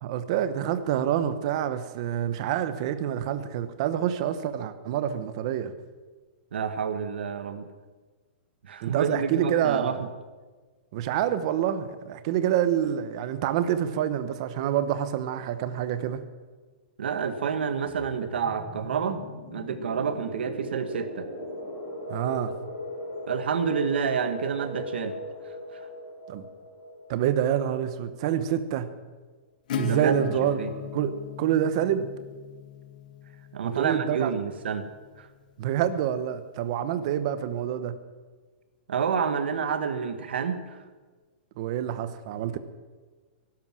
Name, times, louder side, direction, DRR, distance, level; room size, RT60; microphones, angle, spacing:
voice 1, 0.0-5.7 8.8-10.0 10.9-16.2 22.1-22.5 26.3-26.4 27.1-28.9 29.7-32.1 33.6-34.3 35.6-38.0 41.6-42.6, right 10 dB, 35° right, 12 dB, 0.9 m, -27 dB
voice 2, 6.5-7.7 8.6-10.1 17.0-19.2 19.5-21.3 23.3-25.1 29.8-30.2 30.6-30.7 33.5-34.8 35.2-35.3 38.9-40.8, right 6 dB, 80° right, 9 dB, 1.6 m, -28 dB
sound 1, 17.9-28.3, left 1 dB, 25° left, 6.2 m, -39 dB
Acoustic guitar / Strum, 29.7-35.2, left 10 dB, 45° left, 1.1 m, -38 dB
16.0 x 12.0 x 7.5 m, 1.4 s
hypercardioid pair, 175°, 6 cm